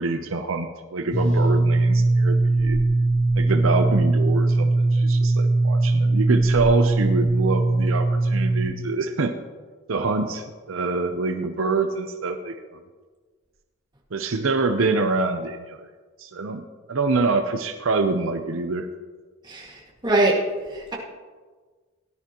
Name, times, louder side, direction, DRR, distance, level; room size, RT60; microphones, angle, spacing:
voice 1, 0.0-2.8 3.4-9.3 9.9-12.8 14.1-15.8 16.2-16.6 16.9-18.9, right 3 dB, 70° right, 6 dB, 0.6 m, -25 dB
sound 1, 1.1-8.6, right 2 dB, 80° left, 2.0 m, -20 dB
voice 2, 20.0-20.4 20.7-20.9, right 2 dB, 20° right, -4 dB, 1.9 m, -22 dB
17.5 x 10.5 x 3.0 m, 1.4 s
head